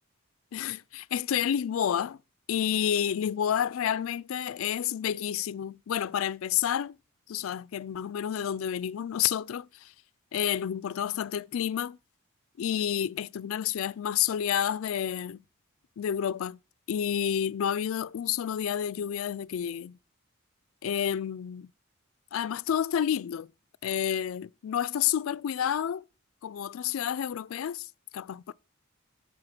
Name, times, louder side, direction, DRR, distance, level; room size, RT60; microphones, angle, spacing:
voice 1, 0.5-2.2 2.5-7.0 7.3-9.9 10.3-12.0 12.6-15.4 16.0-16.6 16.9-20.0 20.8-21.7 22.3-23.5 23.8-26.0 26.4-28.5, left 9 dB, 80° left, 0.4 m, -30 dB
7.7 x 6.8 x 5.9 m
head